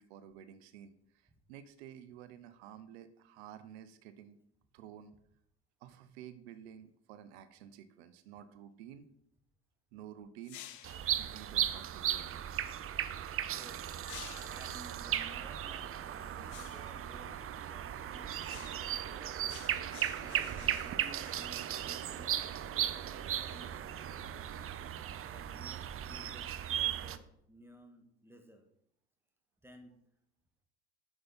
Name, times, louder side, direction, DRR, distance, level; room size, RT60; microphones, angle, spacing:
voice 1, 0.0-4.4 4.7-5.1 5.8-9.1 9.9-10.6 11.2-12.3, right 10 dB, 80° right, 12 dB, 0.7 m, -51 dB
sound 1, 10.4-11.1 14.0-14.8 16.5-17.0 18.4-19.0 19.5-22.2, left 12 dB, 65° left, 0.9 m, -52 dB
sound 2, 10.8-27.2, right 10 dB, 45° right, 0.7 m, -37 dB
voice 2, 13.4-13.9 14.5-19.3 20.1-22.3 23.3-24.3 25.3-28.7 29.6-30.0, right 1 dB, 5° right, 4 dB, 1.8 m, -56 dB
7.6 x 7.0 x 4.2 m, 0.72 s
hypercardioid pair, 65°, 32 cm